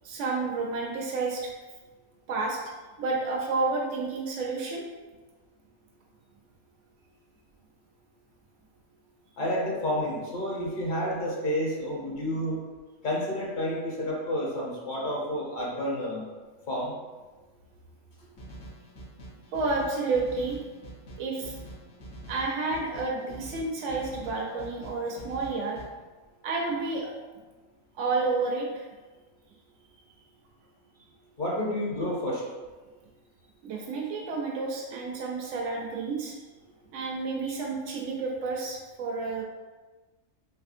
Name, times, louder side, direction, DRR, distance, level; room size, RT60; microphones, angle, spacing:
voice 1, 0.0-1.5 2.3-2.6 3.0-4.8 19.5-20.6 21.2-21.6 22.3-25.8 26.4-27.1 27.9-28.8 33.6-36.4 36.9-39.4, right 3 dB, 75° right, -1 dB, 0.9 m, -30 dB
voice 2, 9.4-12.6 13.0-16.2 16.7-16.9 31.4-32.4, equal, 45° left, -4 dB, 0.7 m, -30 dB
sound 1, 18.4-25.8, right 1 dB, 80° left, 1.2 m, -45 dB
3.4 x 3.1 x 2.5 m, 1.3 s
omnidirectional pair, 1.3 m